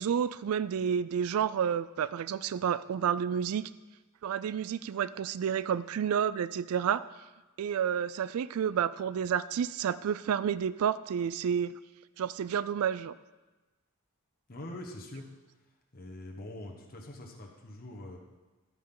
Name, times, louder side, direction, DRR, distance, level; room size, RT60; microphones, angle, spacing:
voice 1, 0.0-3.6 4.2-7.1 7.6-11.8 12.2-13.2, right 8 dB, 75° right, 17 dB, 0.3 m, -30 dB
voice 2, 14.5-15.3 15.6-18.2, left 1 dB, 40° left, 0 dB, 1.2 m, -44 dB
11.0 x 9.5 x 3.9 m, 1.1 s
head